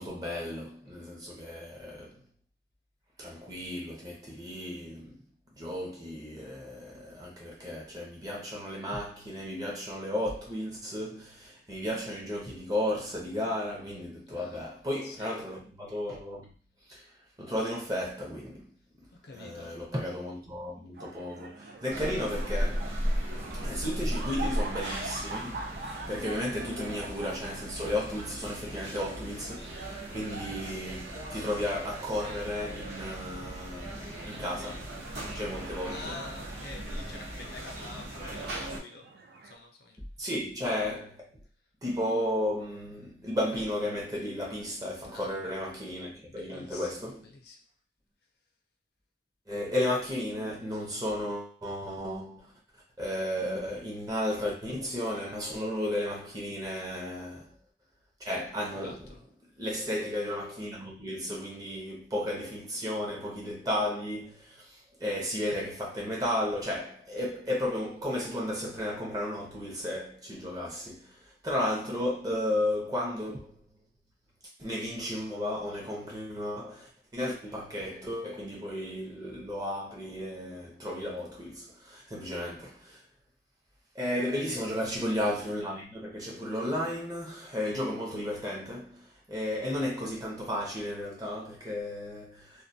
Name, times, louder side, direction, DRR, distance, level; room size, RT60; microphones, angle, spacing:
voice 1, 0.0-2.2 3.2-5.3 5.6-16.5 16.9-17.0 17.4-18.7 19.3-23.0 23.6-34.9 35.3-36.2 40.2-41.3 41.8-47.2 49.5-52.5 53.0-57.6 58.2-59.1 59.6-73.6 74.6-83.0 83.9-92.6, left 1 dB, 20° right, 0.6 m, -34 dB
voice 2, 14.3-14.6 15.0-15.3 19.2-19.8 35.3-35.5 35.8-39.1 39.4-40.0 45.1-45.4 46.2-47.6 58.8-59.3 84.4-84.6, left 3 dB, 60° left, 0.5 m, -47 dB
sound 1, 20.9-39.5, right 2 dB, 55° right, 0.3 m, -46 dB
sound 2, 21.9-38.8, equal, 70° right, 0.8 m, -37 dB
2.2 x 2.1 x 2.6 m
head